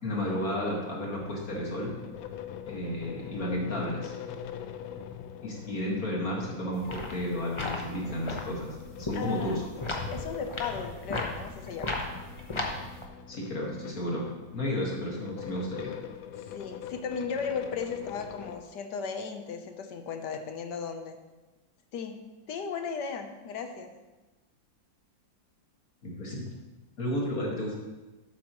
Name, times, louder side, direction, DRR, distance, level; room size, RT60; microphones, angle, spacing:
voice 1, 0.0-1.9 2.7-4.1 5.4-9.6 13.3-14.3 14.5-15.9 26.0-26.5 27.0-27.7, left 1 dB, 45° left, -3 dB, 2.2 m, -32 dB
sound 1, 1.2-18.6, left 9 dB, 85° left, 1.4 m, -43 dB
sound 2, 6.7-13.1, left 2 dB, 30° left, 0.5 m, -36 dB
voice 2, 9.1-9.6 10.1-12.0 16.4-21.2 21.9-22.2 22.5-23.9, left 6 dB, 65° left, 6 dB, 1.4 m, -36 dB
12.5 x 8.5 x 3.1 m, 1.1 s
omnidirectional pair, 2.2 m